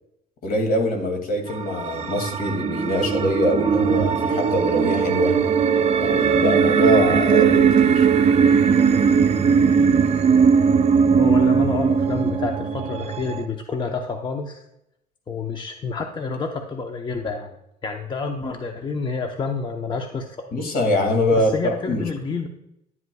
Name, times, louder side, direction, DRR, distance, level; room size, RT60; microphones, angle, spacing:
voice 1, 0.4-5.4 6.0-8.1 20.5-22.0, left 1 dB, 60° left, 4 dB, 2.3 m, -23 dB
sound 1, 1.5-13.4, right 6 dB, 40° right, 0.7 m, -19 dB
voice 2, 11.2-14.6 15.3-17.6 17.8-20.4 21.3-22.5, left 4 dB, 25° left, 4 dB, 0.8 m, -29 dB
11.0 x 8.0 x 2.3 m, 0.80 s
cardioid pair, 110°, 17 cm